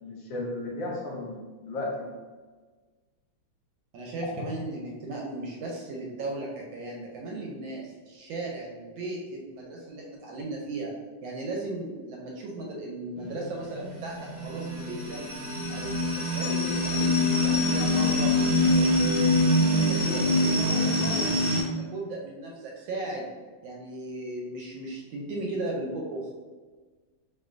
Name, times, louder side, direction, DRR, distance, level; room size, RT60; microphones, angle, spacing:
voice 1, 0.0-2.1 4.2-4.4, left 2 dB, 70° left, -1 dB, 1.2 m, -34 dB
voice 2, 3.9-10.9 11.2-14.2 14.4-15.3 15.7-18.3 18.7-23.3 23.6-26.3, right 2 dB, 75° right, -1 dB, 1.2 m, -36 dB
sound 1, 13.2-21.6, left 1 dB, 55° right, 0.6 m, -25 dB
4.3 x 2.7 x 2.5 m, 1.4 s
omnidirectional pair, 2.4 m